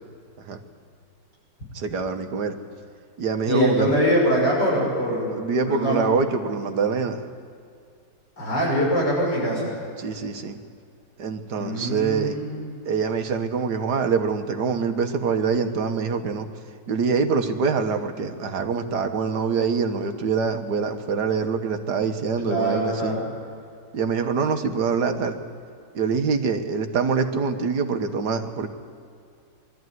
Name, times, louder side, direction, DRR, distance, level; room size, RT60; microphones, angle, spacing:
voice 1, 1.7-2.6 3.2-3.9 5.2-7.3 10.0-10.6 11.2-12.4 12.8-16.5 16.9-23.2 23.9-25.4 25.9-28.7, right 5 dB, 65° right, 6 dB, 1.8 m, -25 dB
voice 2, 3.5-5.3 5.6-6.0 8.4-9.7 11.5-12.6 22.4-23.2, equal, 70° left, -4 dB, 6.6 m, -23 dB
22.5 x 13.5 x 9.4 m, 2.3 s
omnidirectional pair, 2.0 m